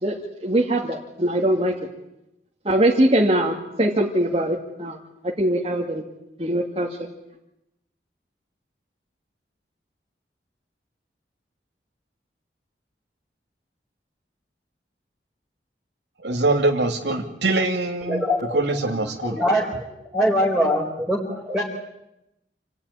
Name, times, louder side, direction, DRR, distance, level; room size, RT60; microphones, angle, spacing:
voice 1, 0.4-1.7 2.7-5.0 5.4-6.0 6.4-6.9, right 1 dB, 35° right, -1 dB, 2.4 m, -21 dB
voice 2, 16.2-18.2 18.5-19.4, right 2 dB, 85° right, 1 dB, 2.7 m, -23 dB
voice 3, 18.0-19.7 20.1-21.6, equal, 5° right, -3 dB, 3.9 m, -23 dB
28.0 x 18.0 x 10.0 m, 0.89 s
head